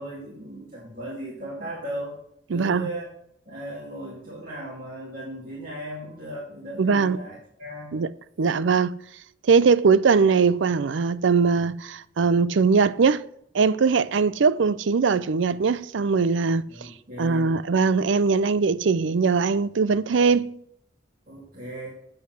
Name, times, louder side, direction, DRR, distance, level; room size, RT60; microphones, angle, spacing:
voice 1, 0.0-2.2 2.5-3.1 3.5-8.0 16.7-17.5 21.3-21.9, right 1 dB, 50° right, 2.5 m, -37 dB
voice 2, 2.5-2.9 6.8-7.2 7.9-8.1 8.4-9.0 9.4-13.2 13.5-16.9 17.2-20.6, right 5 dB, 80° right, 0.5 m, -21 dB
8.4 x 7.9 x 6.1 m
head